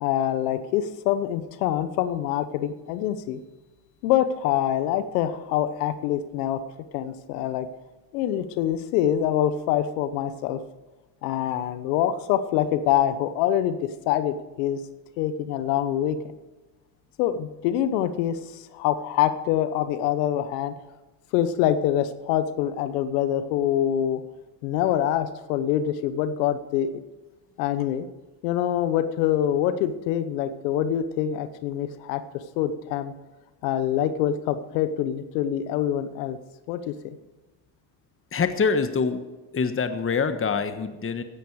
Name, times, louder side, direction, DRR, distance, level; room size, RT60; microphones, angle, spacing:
voice 1, 0.0-3.4 4.0-6.6 6.9-7.7 8.1-10.6 11.2-14.8 15.2-16.2 17.2-20.7 21.3-24.2 24.6-26.9 27.6-28.1 28.4-33.1 33.6-36.4 36.7-37.2, left 11 dB, 85° left, 11 dB, 1.1 m, -25 dB
voice 2, 38.3-39.2 39.5-41.2, left 5 dB, 25° left, 9 dB, 1.3 m, -25 dB
16.0 x 11.5 x 4.8 m, 1.1 s
hypercardioid pair, 65°, 47 cm